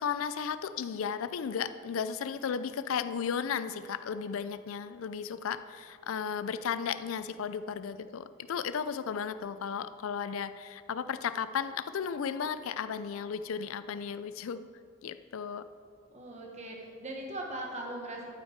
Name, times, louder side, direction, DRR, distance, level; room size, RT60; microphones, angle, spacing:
voice 1, 0.0-14.6 15.0-15.6, left 7 dB, 75° left, 13 dB, 0.4 m, -34 dB
voice 2, 16.1-18.3, right 1 dB, 35° right, -1 dB, 1.4 m, -40 dB
11.5 x 5.6 x 4.6 m, 2.1 s
head